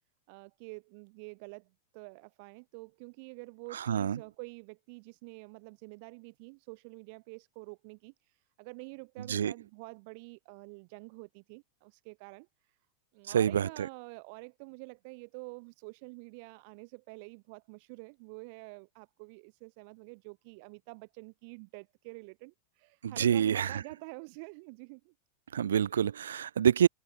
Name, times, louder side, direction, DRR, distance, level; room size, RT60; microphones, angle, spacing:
voice 1, 0.3-12.8 13.1-25.1, right 32 dB, 45° right, 0.7 m, -48 dB
voice 2, 3.9-4.2 9.3-9.5 13.3-13.7 23.0-23.8 25.5-26.9, right 9 dB, 65° right, 0.3 m, -26 dB
figure-of-eight pair, 90°, 0 cm